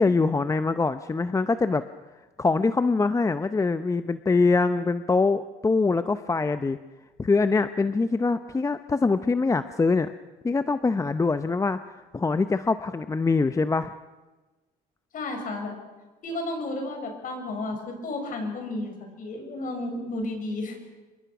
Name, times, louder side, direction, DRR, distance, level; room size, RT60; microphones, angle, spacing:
voice 1, 0.0-1.8 2.4-6.8 7.2-10.1 10.4-13.9, left 3 dB, 20° left, 11 dB, 0.7 m, -24 dB
voice 2, 15.1-15.7 16.2-20.8, left 2 dB, 55° left, 4 dB, 6.7 m, -32 dB
27.5 x 22.5 x 6.1 m, 1.2 s
cardioid pair, 110°, 17 cm